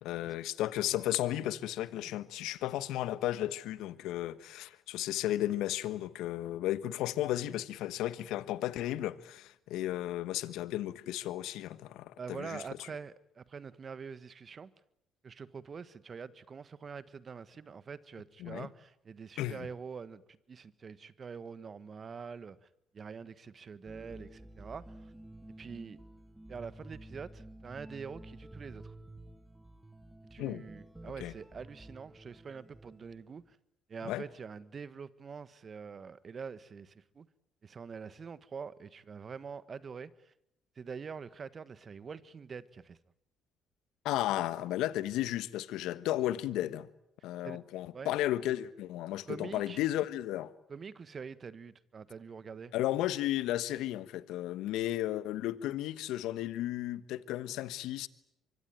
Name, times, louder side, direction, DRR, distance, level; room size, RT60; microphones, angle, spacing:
voice 1, 0.0-12.9 18.4-18.7 19.4-19.7 30.4-30.6 31.2-31.3 34.0-34.3 44.0-46.9 47.2-50.5 52.7-58.1, left 14 dB, 75° left, 1.2 m, -34 dB
voice 2, 12.2-14.7 15.2-22.7 22.9-25.1 25.6-26.0 26.5-28.9 30.3-33.6 33.9-37.3 37.6-40.3 40.7-43.0 47.4-47.6 47.9-48.1 49.3-49.8 50.7-52.7, right 6 dB, 40° right, 1.4 m, -45 dB
sound 1, 23.9-33.4, right 1 dB, 10° right, 1.6 m, -51 dB
24.5 x 24.0 x 9.2 m
hypercardioid pair, 60°, 0 cm